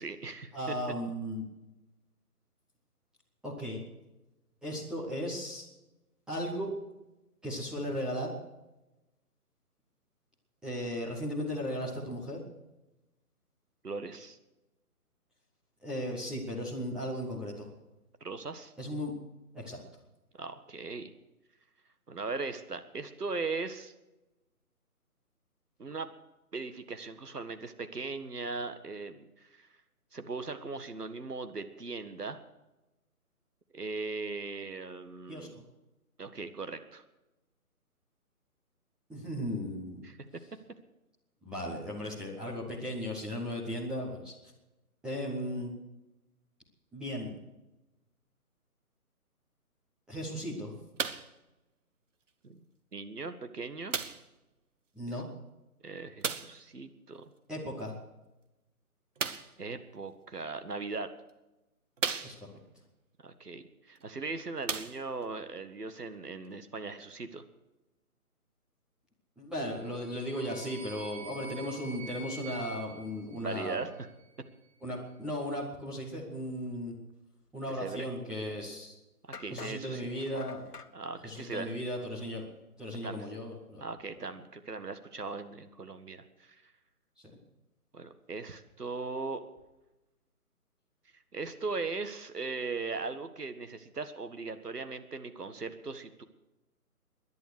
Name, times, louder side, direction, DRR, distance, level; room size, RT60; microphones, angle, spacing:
voice 1, 0.0-0.7 13.8-14.4 18.2-18.7 20.4-21.1 22.1-23.9 25.8-26.1 26.5-29.7 30.1-32.4 33.7-35.6 36.2-37.0 40.0-40.2 52.4-52.6 52.9-54.0 55.1-55.2 55.8-57.2 59.6-61.1 63.2-67.4 73.3-73.9 77.7-78.1 79.4-80.1 80.9-81.7 83.0-83.3 83.8-86.7 87.9-89.4 91.3-96.2, right 3 dB, 85° right, 9 dB, 1.8 m, -39 dB
voice 2, 0.5-1.4 3.4-3.8 4.6-5.7 6.3-6.7 7.4-8.3 10.6-12.4 15.8-17.7 18.8-19.1 19.5-19.8 35.3-35.6 39.1-40.0 41.4-44.3 45.0-45.7 46.9-47.3 50.1-50.7 54.9-55.3 57.5-57.9 62.2-62.6 69.4-73.8 74.8-76.9 77.5-78.9 79.5-80.6 81.2-82.4 82.8-83.8, equal, ahead, -7 dB, 1.0 m, -36 dB
sound 1, 51.0-51.4 52.3-52.4 53.9-54.3 56.2-56.6 59.2-59.6 60.6-60.7 61.3-61.4 62.0-62.7 64.0-64.1 64.6-65.3 66.1-66.2, right 6 dB, 55° right, 1.2 m, -35 dB
sound 2, 69.8-74.1, right 2 dB, 25° right, 3.1 m, -47 dB
sound 3, 79.3-80.9, left 5 dB, 80° left, 1.3 m, -46 dB
18.5 x 11.0 x 6.3 m, 1.0 s
figure-of-eight pair, 150°, 45 cm